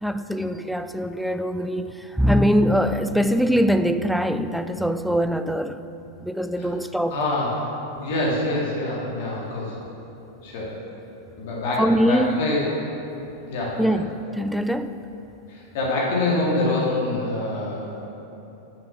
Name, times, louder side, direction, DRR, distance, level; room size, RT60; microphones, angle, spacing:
voice 1, 0.0-5.8 6.2-7.2 11.8-12.4 13.8-15.0, equal, ahead, 0.3 m, -22 dB
voice 2, 7.1-7.5 8.0-9.7 10.4-10.7 11.4-12.6 13.5-13.8 15.5-18.1, left 2 dB, 50° left, 2.2 m, -25 dB
7.2 x 6.9 x 6.0 m
figure-of-eight pair, 90°, 0 cm